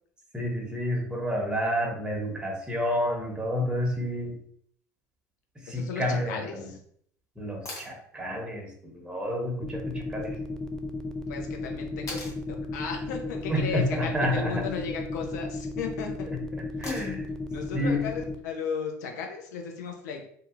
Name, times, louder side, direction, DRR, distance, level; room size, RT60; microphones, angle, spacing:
voice 1, 0.3-4.3 5.6-6.7 7.4-10.4 13.5-14.6 16.8-17.3 17.7-18.0, left 1 dB, 10° right, 0 dB, 0.9 m, -29 dB
voice 2, 5.7-6.8 11.3-12.2 12.5-16.3 17.5-20.3, left 6 dB, 75° left, 2 dB, 0.6 m, -35 dB
sound 1, 7.7-8.0 10.2-10.3 12.1-12.4 14.4-14.8 16.8-17.3 19.4-19.5, left 1 dB, 35° left, 1.1 m, -40 dB
sound 2, 9.6-18.3, left 2 dB, 5° left, 0.4 m, -34 dB
2.7 x 2.5 x 2.5 m, 0.63 s
hypercardioid pair, 75°, 9 cm